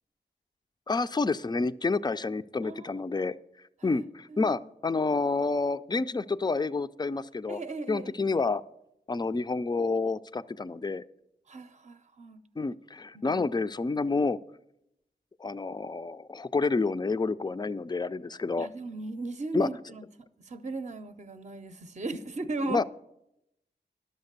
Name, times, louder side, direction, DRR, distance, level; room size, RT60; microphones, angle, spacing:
voice 1, 0.9-3.3 3.8-7.6 7.9-8.6 9.1-11.0 12.6-14.4 15.4-18.7 19.5-19.7 22.6-22.8, left 3 dB, 25° left, 14 dB, 0.4 m, -29 dB
voice 2, 2.6-3.0 3.8-4.0 4.3-4.6 7.5-8.1 11.5-12.4 13.1-13.4 13.9-14.0 18.6-20.1 20.4-22.8, right 3 dB, 40° right, 10 dB, 0.6 m, -37 dB
11.5 x 6.4 x 6.7 m, 0.83 s
cardioid pair, 50°, 18 cm